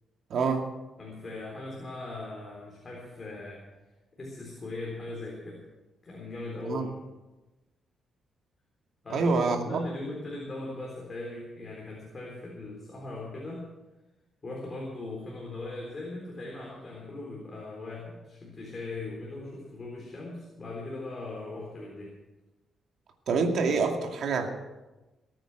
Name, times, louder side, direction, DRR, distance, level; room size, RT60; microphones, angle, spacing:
voice 1, 0.3-0.7 6.7-6.9 9.1-9.8 23.3-24.5, right 4 dB, 65° right, 3 dB, 2.3 m, -26 dB
voice 2, 1.0-3.7 4.2-5.6 6.0-6.9 9.0-13.7 14.4-22.2, left 2 dB, 30° left, -3 dB, 3.9 m, -39 dB
20.0 x 9.2 x 6.3 m, 1.1 s
cardioid pair, 145°, 0 cm